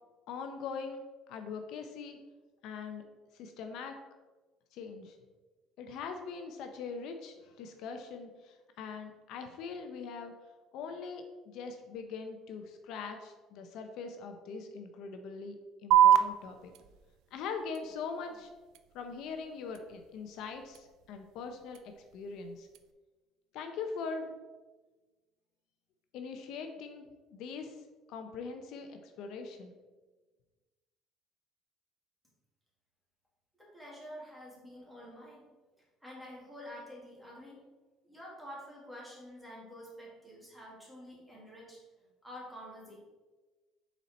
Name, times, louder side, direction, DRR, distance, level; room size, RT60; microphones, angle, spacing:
voice 1, 0.3-1.0 1.3-2.2 2.6-3.0 3.3-4.0 4.7-5.2 5.8-10.3 10.7-15.5 15.8-16.7 17.3-18.5 18.9-21.8 22.1-22.7 23.5-24.3 26.1-27.0 27.3-27.8 28.1-29.7, left 5 dB, 65° left, 5 dB, 0.6 m, -42 dB
sound 1, 15.9-22.9, right 10 dB, 70° right, 0.4 m, -31 dB
voice 2, 33.6-35.4 36.0-37.6 38.0-41.8 42.2-43.0, equal, ahead, -5 dB, 2.1 m, -48 dB
7.0 x 4.2 x 4.2 m, 1.3 s
cardioid pair, 145°, 0 cm